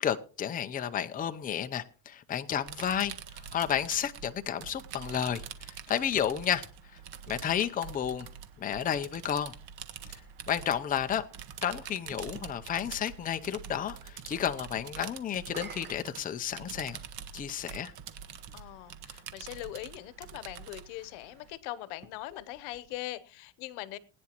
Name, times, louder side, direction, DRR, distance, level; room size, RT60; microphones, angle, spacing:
voice 1, 0.0-6.6 7.3-8.3 8.6-9.5 10.5-11.2 11.6-17.0 17.3-17.9, left 9 dB, 20° left, 0.6 m, -32 dB
sound 1, 2.7-21.6, right 8 dB, 60° right, 1.6 m, -46 dB
sound 2, 11.3-12.5 15.3-17.1 18.0-18.1 21.9-23.4, right 5 dB, 25° right, 1.4 m, -51 dB
voice 2, 18.5-24.0, left 15 dB, 80° left, 1.0 m, -41 dB
21.0 x 9.7 x 3.0 m
cardioid pair, 130°, 43 cm